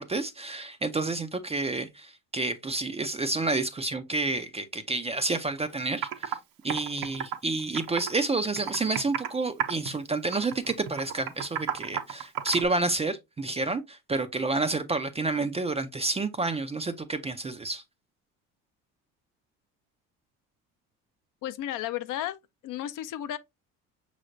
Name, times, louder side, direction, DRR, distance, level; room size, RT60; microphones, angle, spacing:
voice 1, 0.0-6.4 6.6-17.8, right 3 dB, 15° right, 0.4 m, -29 dB
Computer keyboard, 5.6-5.7 6.0-6.4 6.7-8.2 8.6-9.3 9.6-10.0 10.3-12.7, right 9 dB, 60° right, 0.7 m, -32 dB
voice 2, 21.4-22.4 22.6-23.4, left 12 dB, 55° left, 0.5 m, -33 dB
5.5 x 3.2 x 2.5 m
hypercardioid pair, 70°, 39 cm